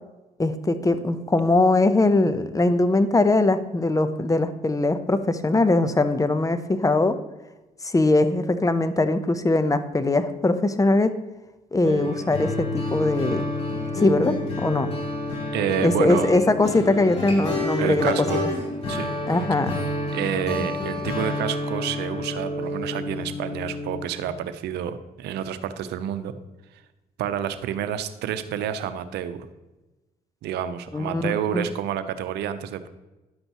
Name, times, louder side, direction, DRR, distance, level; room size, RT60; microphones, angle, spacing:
voice 1, 0.4-7.2 7.8-11.1 11.7-13.5 13.9-14.9 15.8-18.1 19.3-19.8 30.9-31.6, left 2 dB, 20° left, 11 dB, 0.8 m, -21 dB
sound 1, 11.8-24.0, left 2 dB, 35° left, 3.6 m, -29 dB
voice 2, 15.5-16.3 17.8-18.5 18.9-19.1 20.1-26.3 27.2-29.5 30.4-32.9, right 9 dB, 80° right, 11 dB, 0.7 m, -29 dB
11.0 x 7.9 x 3.0 m, 1.0 s
supercardioid pair, 70°, 17 cm